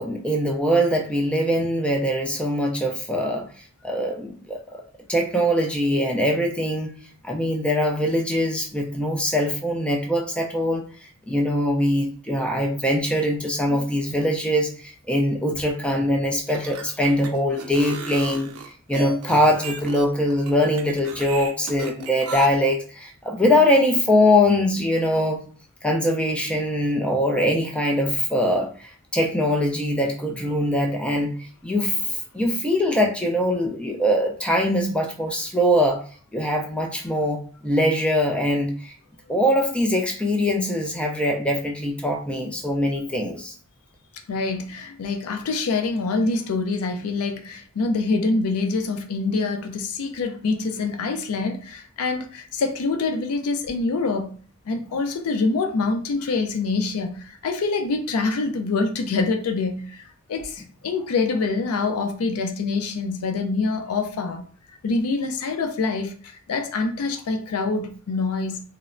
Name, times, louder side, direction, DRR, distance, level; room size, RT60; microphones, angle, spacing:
voice 1, 0.0-3.5 3.8-4.8 5.1-6.9 7.2-10.8 11.3-25.4 25.8-31.3 31.6-36.0 36.3-38.9 39.3-43.5, left 1 dB, 5° left, 0.3 m, -22 dB
sound 1, 16.4-22.5, right 5 dB, 80° right, 0.4 m, -35 dB
voice 2, 44.3-54.3 54.7-60.0 60.3-64.4 64.8-68.6, left 3 dB, 80° left, 0.4 m, -25 dB
3.0 x 2.0 x 2.4 m
head